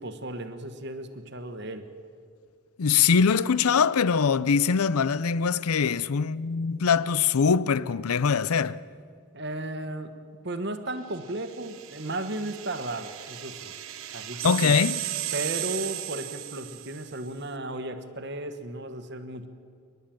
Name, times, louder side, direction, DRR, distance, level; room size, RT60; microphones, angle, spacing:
voice 1, 0.0-1.9 9.3-10.1 10.4-13.7 14.1-14.8 15.3-19.5, right 1 dB, 50° right, 1.3 m, -35 dB
voice 2, 2.8-8.8 14.4-15.0, left 6 dB, 90° left, 0.6 m, -23 dB
sound 1, 11.3-17.2, right 14 dB, 70° right, 1.0 m, -35 dB
29.5 x 11.0 x 8.8 m
head